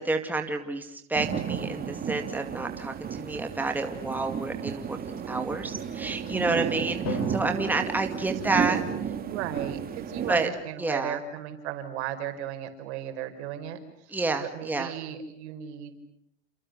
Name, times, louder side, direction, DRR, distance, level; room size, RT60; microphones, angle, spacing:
voice 1, 0.0-8.8 10.3-10.5 10.8-11.2 14.1-14.9, right 3 dB, 5° right, 5 dB, 2.1 m, -29 dB
sound 1, 1.2-10.5, right 7 dB, 25° right, 2.7 m, -33 dB
voice 2, 6.3-6.8 8.5-8.6 8.9-14.2 14.5-15.9, right 10 dB, 70° right, 7 dB, 5.3 m, -36 dB
Drum, 7.1-9.2, left 6 dB, 50° left, 6.4 m, -40 dB
29.0 x 28.5 x 6.6 m, 0.73 s
supercardioid pair, 135°, 35 cm